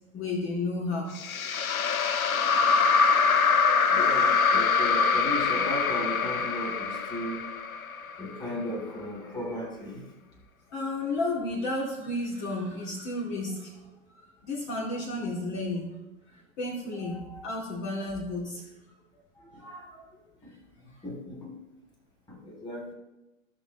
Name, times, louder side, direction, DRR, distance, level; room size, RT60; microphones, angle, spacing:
voice 1, 0.1-1.1 10.7-13.7 14.1-15.9 16.3-18.6, left 2 dB, 40° left, -2 dB, 2.4 m, -32 dB
sound 1, 1.2-8.4, left 5 dB, 85° left, 0.7 m, -24 dB
voice 2, 3.9-7.5 8.2-10.1 16.9-17.4 19.4-20.5 21.0-21.5 22.3-22.9, equal, 10° left, -2 dB, 2.9 m, -36 dB
16.0 x 6.3 x 3.0 m, 1.0 s
hypercardioid pair, 105°, 41 cm